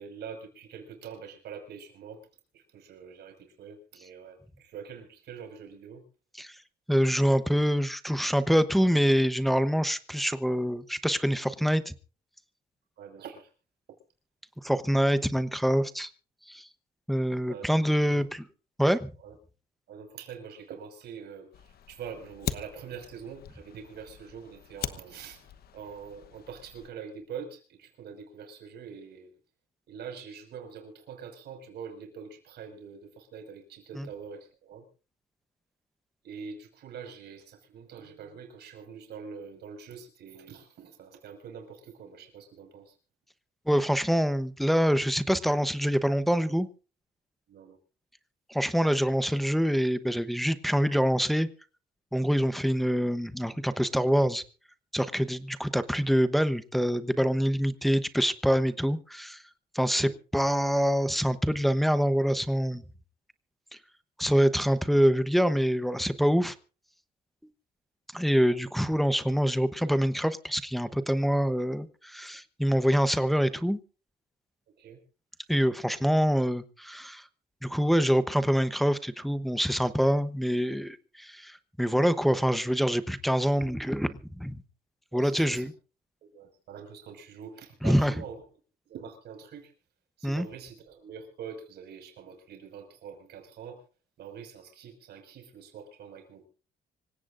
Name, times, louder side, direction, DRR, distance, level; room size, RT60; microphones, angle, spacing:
voice 1, 0.0-2.2 2.5-6.0 13.0-13.5 13.9-14.0 17.5-17.7 18.1-18.3 19.2-19.3 19.9-29.3 29.9-34.8 36.2-42.9 47.5-47.8 60.0-60.2 74.8-75.0 85.1-85.7 86.2-88.4 88.9-89.7 90.2-93.8 94.2-96.5, right 6 dB, 75° right, 4 dB, 5.6 m, -44 dB
voice 2, 6.9-11.9 14.6-16.1 16.5-16.7 17.1-18.5 18.8-19.1 34.0-34.1 43.7-46.7 48.5-51.5 52.1-54.4 54.9-59.4 59.7-62.8 63.7-63.8 64.2-66.5 68.1-73.8 75.5-77.3 77.6-84.6 85.1-85.7 87.8-88.1 90.2-90.5, equal, ahead, 11 dB, 0.9 m, -25 dB
Fire, 21.5-26.9, left 10 dB, 65° left, 1.0 m, -41 dB
26.0 x 16.5 x 2.6 m, 0.37 s
cardioid pair, 140°, 17 cm